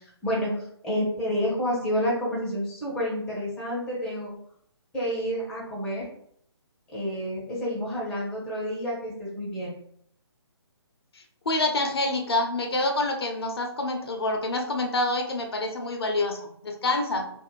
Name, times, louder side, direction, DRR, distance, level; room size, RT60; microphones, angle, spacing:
voice 1, 0.0-4.4 4.9-6.1 6.9-9.8, equal, 5° left, -5 dB, 0.6 m, -29 dB
voice 2, 11.1-17.3, left 2 dB, 60° left, 3 dB, 0.5 m, -27 dB
2.4 x 2.0 x 3.0 m, 0.68 s
figure-of-eight pair, 140°, 14 cm